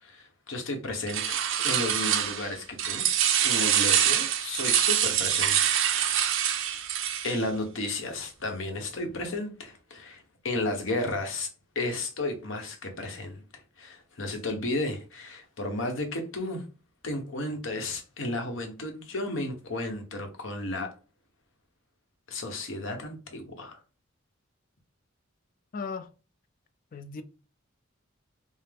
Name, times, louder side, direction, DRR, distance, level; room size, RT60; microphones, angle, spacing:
voice 1, 0.0-3.1 3.4-6.3 7.2-11.5 11.7-13.4 13.8-16.6 17.0-20.9 22.3-23.8, left 2 dB, 70° left, 1.0 m, -33 dB
sound 1, 1.1-2.5 2.8-7.4, right 9 dB, 65° right, 0.6 m, -25 dB
voice 2, 25.7-26.1 26.9-27.2, left 5 dB, 45° left, 0.4 m, -36 dB
5.5 x 2.0 x 3.4 m
head